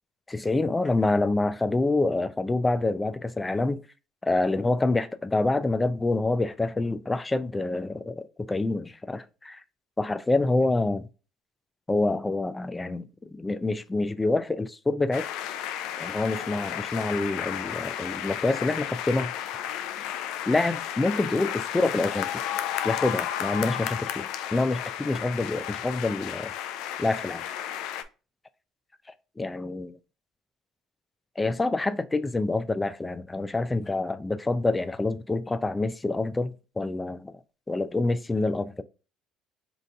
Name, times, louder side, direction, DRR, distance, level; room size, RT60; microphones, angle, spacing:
voice 1, 0.3-3.8 4.2-9.6 10.0-11.1 11.9-15.3 16.0-19.3 20.5-22.4 22.8-26.5 27.0-27.4 29.4-30.0 31.4-37.3 37.7-38.8, left 2 dB, 15° left, 0.4 m, -27 dB
sound 1, 15.1-28.0, left 11 dB, 75° left, 0.4 m, -33 dB
4.0 x 2.5 x 3.4 m
supercardioid pair, 75°, 0 cm